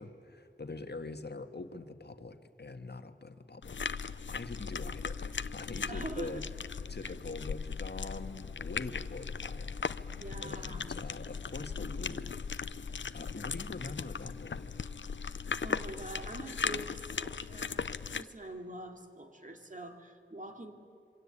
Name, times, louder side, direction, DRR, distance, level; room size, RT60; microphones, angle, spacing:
voice 1, 0.0-6.4 6.9-9.8 10.4-14.9, left 3 dB, 60° left, 8 dB, 1.6 m, -44 dB
sound 1, 3.6-18.2, left 5 dB, 75° left, 0.7 m, -38 dB
voice 2, 5.9-6.4 7.0-7.1 10.1-11.0 15.6-20.7, right 1 dB, 40° right, 4 dB, 2.7 m, -45 dB
27.0 x 24.0 x 8.7 m, 2.5 s
wide cardioid pair, 70°, 19 cm